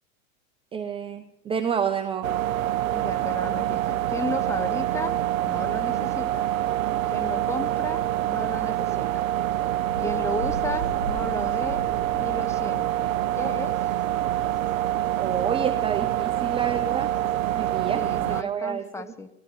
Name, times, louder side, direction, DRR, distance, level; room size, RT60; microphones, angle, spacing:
voice 1, 0.7-2.3 15.2-17.1 17.5-18.0 18.3-19.1, right 7 dB, 15° right, 7 dB, 0.6 m, -29 dB
sound 1, 2.2-18.4, right 13 dB, 70° right, 0.6 m, -26 dB
voice 2, 2.9-5.1 5.5-6.4 7.1-8.0 8.3-9.2 10.0-11.8 12.2-13.9 17.9-19.3, left 3 dB, 5° left, 9 dB, 0.9 m, -34 dB
sound 2, 9.9-17.7, right 2 dB, 75° left, 4.5 m, -40 dB
19.5 x 13.0 x 3.8 m, 0.94 s
hypercardioid pair, 110°, 40 cm